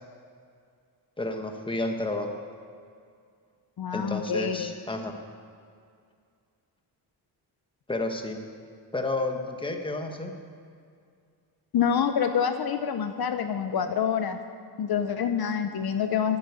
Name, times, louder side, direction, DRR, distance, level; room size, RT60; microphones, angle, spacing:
voice 1, 1.2-2.3 3.9-5.1 7.9-8.4 8.9-10.3, left 2 dB, 10° left, 4 dB, 1.3 m, -31 dB
voice 2, 3.8-4.7 11.7-14.4 14.8-16.4, left 7 dB, 60° left, 8 dB, 0.8 m, -27 dB
10.0 x 9.8 x 8.2 m, 2.3 s
cardioid pair, 110°, 42 cm